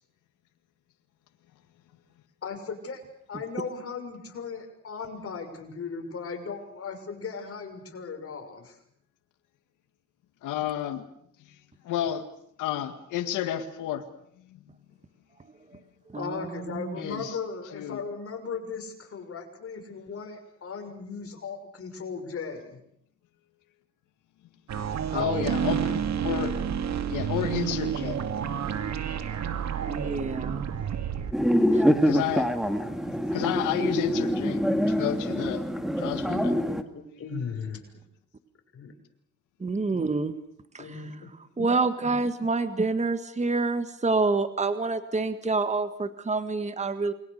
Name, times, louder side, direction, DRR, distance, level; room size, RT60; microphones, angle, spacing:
voice 1, 2.4-3.0 3.3-8.8 16.2-22.8 36.9-37.8 38.7-38.9 40.8-41.3, left 5 dB, 50° left, 4 dB, 6.3 m, -37 dB
voice 2, 10.4-11.1 11.8-12.3 12.6-14.0 17.0-17.4 17.7-18.0 25.1-26.6 27.1-28.2 32.0-32.5 33.3-35.6 36.0-36.6, left 10 dB, 90° left, 7 dB, 1.9 m, -31 dB
voice 3, 16.1-17.0 25.1-25.4 29.8-30.7 31.7-31.8 39.6-40.4 40.7-41.0 41.6-47.1, right 3 dB, 25° right, 10 dB, 1.8 m, -27 dB
sound 1, 24.7-31.3, right 8 dB, 60° right, 2.3 m, -30 dB
sound 2, 31.3-36.8, equal, ahead, 2.3 m, -25 dB
29.0 x 22.5 x 6.8 m, 0.72 s
cardioid pair, 90°, 30 cm